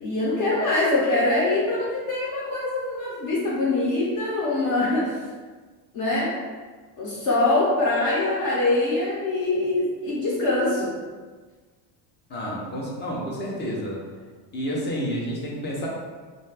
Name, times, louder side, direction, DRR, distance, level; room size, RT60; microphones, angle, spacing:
voice 1, 0.0-5.2 5.9-6.3 7.0-11.0, left 2 dB, 50° left, -6 dB, 0.7 m, -23 dB
voice 2, 12.3-14.0 14.5-15.9, equal, 25° left, -4 dB, 0.4 m, -30 dB
2.5 x 2.2 x 3.2 m, 1.4 s
cardioid pair, 170°, 46 cm